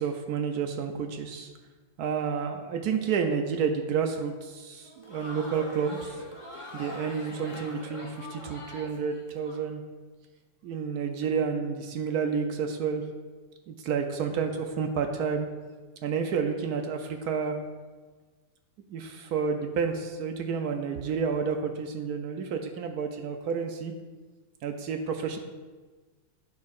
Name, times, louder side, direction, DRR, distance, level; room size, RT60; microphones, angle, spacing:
voice 1, 0.0-1.5 2.0-6.2 6.7-9.8 10.6-13.0 13.7-15.5 16.0-17.6 18.9-23.9 24.6-25.4, right 6 dB, 75° right, 5 dB, 0.9 m, -30 dB
Crowd, 4.7-9.6, left 1 dB, 25° left, 0.8 m, -43 dB
12.5 x 4.6 x 2.4 m, 1.4 s
omnidirectional pair, 2.1 m